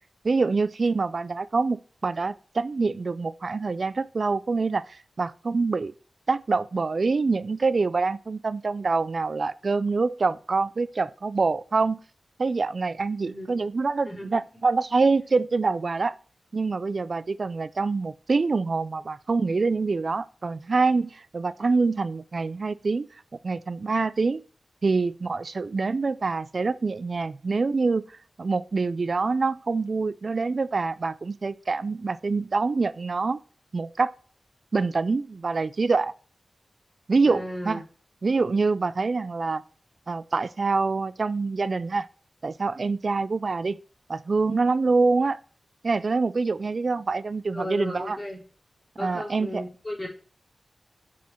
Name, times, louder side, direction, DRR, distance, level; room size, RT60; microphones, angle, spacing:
voice 1, 0.2-5.9 6.3-12.0 12.4-16.1 16.5-23.1 23.4-24.4 24.8-28.0 28.4-33.4 33.7-34.1 34.7-36.1 37.1-37.8 38.2-39.6 40.1-42.1 42.4-43.8 44.1-45.4 45.8-48.2 49.0-49.6, right 4 dB, 65° right, 0.3 m, -25 dB
voice 2, 14.0-14.4 37.2-37.8 47.5-48.4 49.0-50.1, left 1 dB, 25° left, 3.3 m, -34 dB
5.5 x 5.0 x 4.3 m
cardioid pair, 40°, 0 cm